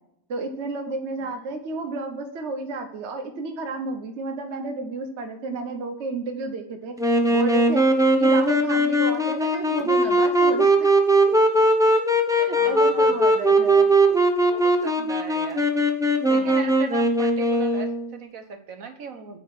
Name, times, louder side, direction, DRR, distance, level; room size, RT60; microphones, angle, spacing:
voice 1, 0.3-7.0 7.3-7.9 8.2-10.9 12.3-13.9 15.0-15.1 16.3-16.7, right 3 dB, 60° right, 6 dB, 1.1 m, -32 dB
Wind instrument woodwind instrument, 7.0-18.1, right 1 dB, 5° right, 0.6 m, -20 dB
voice 2, 12.5-13.4 14.5-15.6 16.3-19.4, right 5 dB, 85° right, 7 dB, 1.5 m, -37 dB
8.8 x 4.7 x 6.0 m, 0.78 s
omnidirectional pair, 1.4 m